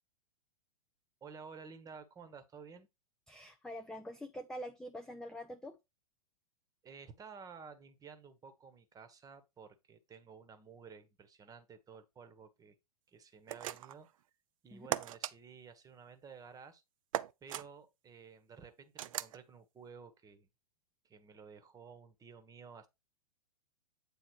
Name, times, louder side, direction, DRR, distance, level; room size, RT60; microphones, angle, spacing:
voice 1, 1.2-2.9 6.8-12.7 13.1-14.1 14.6-16.8 17.4-20.5 21.0-22.9, right 6 dB, 20° right, 1.2 m, -53 dB
voice 2, 3.3-5.8 14.7-14.9, equal, 5° left, 0.5 m, -45 dB
sound 1, 13.5-14.1 14.9-15.3 17.1-17.7 19.0-19.4, right 12 dB, 60° right, 0.5 m, -37 dB
8.9 x 3.7 x 4.7 m
hypercardioid pair, 110°, 20 cm